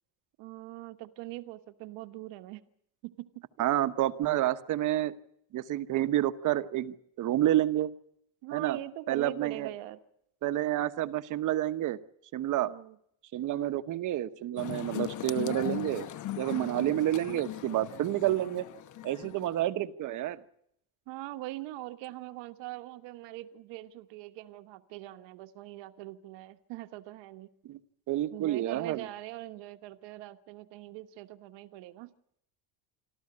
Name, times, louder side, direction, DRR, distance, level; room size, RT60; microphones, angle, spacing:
voice 1, 0.4-2.6 3.0-3.4 8.4-10.0 12.6-13.0 16.5-16.9 21.1-27.5 28.3-32.1, right 16 dB, 70° right, 10 dB, 1.4 m, -42 dB
voice 2, 3.6-5.1 5.5-7.9 8.5-8.8 9.1-9.7 10.4-12.0 12.3-12.7 13.3-16.1 16.4-18.7 19.0-20.4 27.7-27.8 28.1-29.1, right 13 dB, 40° right, 12 dB, 1.1 m, -29 dB
sound 1, 14.6-19.6, left 13 dB, 40° left, 1.0 m, -39 dB
26.5 x 13.5 x 9.7 m, 0.74 s
cardioid pair, 165°, 45 cm